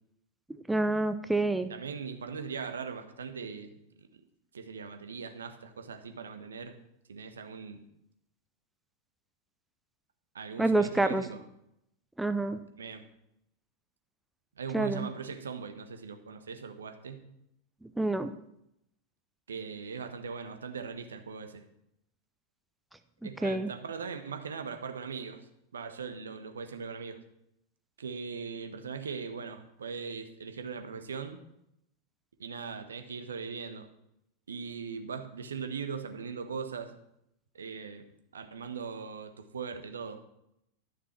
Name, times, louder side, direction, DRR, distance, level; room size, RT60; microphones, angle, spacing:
voice 1, 0.7-1.7 10.6-11.2 12.2-12.6 14.7-15.1 18.0-18.3 23.4-23.7, right 2 dB, 5° right, 10 dB, 0.6 m, -27 dB
voice 2, 1.7-3.8 4.5-6.8 7.1-7.9 10.3-11.4 12.8-13.0 14.6-17.3 19.5-21.6 23.2-25.4 25.7-27.2 28.0-31.4 32.4-33.9 34.5-36.9 37.5-38.0 38.3-40.2, right 5 dB, 70° right, 8 dB, 1.3 m, -40 dB
12.0 x 6.8 x 6.0 m, 0.78 s
figure-of-eight pair, 90°, 0 cm